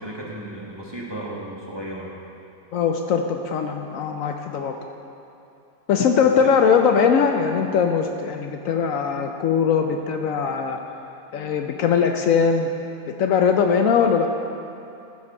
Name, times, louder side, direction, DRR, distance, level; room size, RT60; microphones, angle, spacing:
voice 1, 0.0-2.1 6.4-6.6, right 1 dB, 20° right, -4 dB, 1.0 m, -34 dB
voice 2, 2.7-4.8 5.9-10.8 11.3-12.7 13.2-14.3, left 6 dB, 70° left, 4 dB, 0.9 m, -20 dB
14.5 x 5.1 x 5.3 m, 2.7 s
omnidirectional pair, 1.6 m